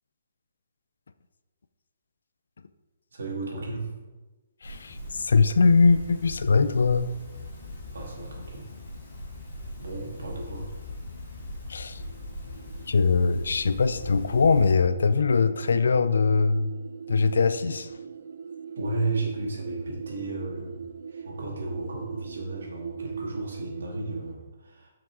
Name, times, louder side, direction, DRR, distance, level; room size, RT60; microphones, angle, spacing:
voice 1, 3.1-3.9 7.9-8.7 9.8-10.7 18.8-20.8 21.1-24.9, right 2 dB, 70° right, -2 dB, 2.6 m, -34 dB
voice 2, 4.6-7.1 11.7-12.0 12.9-16.7 17.1-17.9, left 4 dB, 75° left, 11 dB, 0.5 m, -22 dB
sound 1, 4.6-14.7, left 1 dB, 30° left, 2.5 m, -40 dB
sound 2, 12.0-24.3, right 6 dB, 55° right, 0.5 m, -41 dB
7.5 x 5.9 x 4.8 m, 1.2 s
hypercardioid pair, 175°, 0 cm